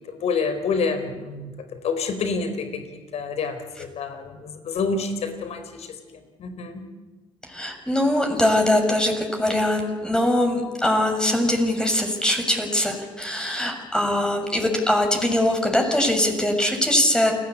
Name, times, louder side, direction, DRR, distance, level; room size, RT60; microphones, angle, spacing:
voice 1, 0.1-1.5 1.8-5.9 6.4-6.8, left 4 dB, 55° left, 9 dB, 4.2 m, -28 dB
voice 2, 7.4-17.3, left 1 dB, 5° left, 3 dB, 6.9 m, -22 dB
29.5 x 19.5 x 8.5 m, 1.3 s
hypercardioid pair, 50°, 13 cm